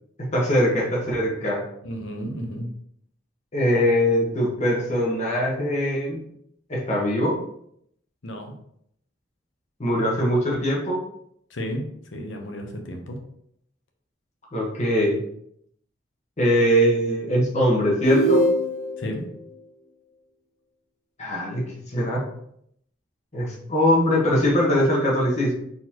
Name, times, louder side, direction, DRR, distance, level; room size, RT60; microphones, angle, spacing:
voice 1, 0.3-1.6 3.5-6.2 6.7-7.3 9.8-11.0 14.5-15.2 16.4-18.4 21.2-22.2 23.3-25.5, equal, 40° left, -3 dB, 1.3 m, -22 dB
voice 2, 1.8-2.7 8.2-8.6 11.5-11.9 12.1-13.2 19.0-19.2, equal, 70° left, 3 dB, 0.9 m, -32 dB
sound 1, 18.0-19.1, right 1 dB, 15° left, 1.4 m, -21 dB
4.2 x 4.0 x 3.0 m, 0.72 s
head